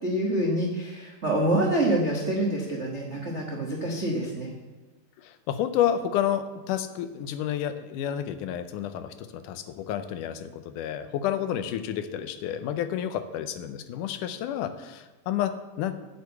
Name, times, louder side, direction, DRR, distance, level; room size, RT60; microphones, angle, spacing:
voice 1, 0.0-4.5, right 1 dB, 55° right, 0 dB, 0.7 m, -26 dB
voice 2, 5.2-15.9, left 10 dB, 80° left, 11 dB, 2.2 m, -30 dB
8.4 x 6.7 x 8.1 m, 1.3 s
omnidirectional pair, 3.7 m